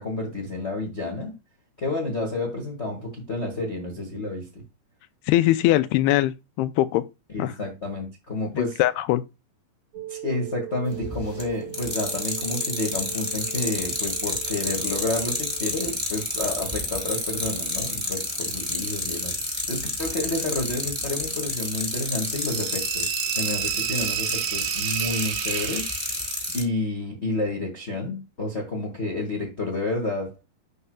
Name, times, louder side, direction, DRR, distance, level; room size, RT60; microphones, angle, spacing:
voice 1, 0.0-1.3 1.8-4.6 7.3-8.8 10.1-30.4, left 2 dB, 40° left, 0.8 m, -30 dB
voice 2, 5.3-7.0 7.4-7.5 8.6-9.2, left 15 dB, 80° left, 2.6 m, -21 dB
sound 1, 9.9-15.7, right 13 dB, 70° right, 2.2 m, -40 dB
sound 2, 11.0-11.4 11.7-26.6, left 1 dB, ahead, 4.1 m, -29 dB
sound 3, 22.3-26.5, right 15 dB, 90° right, 2.0 m, -31 dB
11.5 x 5.5 x 2.3 m
omnidirectional pair, 4.7 m